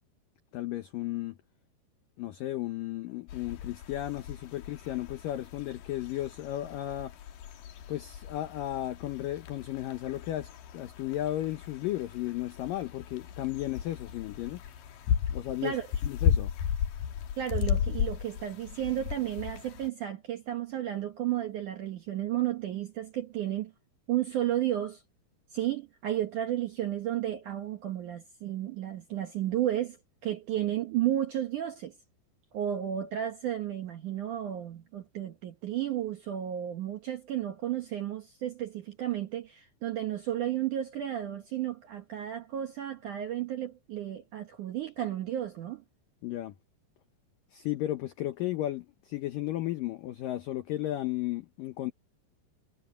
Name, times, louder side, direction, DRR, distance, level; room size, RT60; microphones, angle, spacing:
voice 1, 0.5-1.4 2.2-7.1 7.9-14.6 15.3-15.8 16.0-16.5 46.2-46.6 47.5-51.9, left 14 dB, 90° left, 1.9 m, -34 dB
sound 1, 3.3-19.9, left 8 dB, 60° left, 2.7 m, -35 dB
voice 2, 17.4-23.7 24.1-25.0 25.5-30.0 30.2-31.9 32.5-45.8, right 12 dB, 75° right, 1.9 m, -33 dB
omnidirectional pair, 5.3 m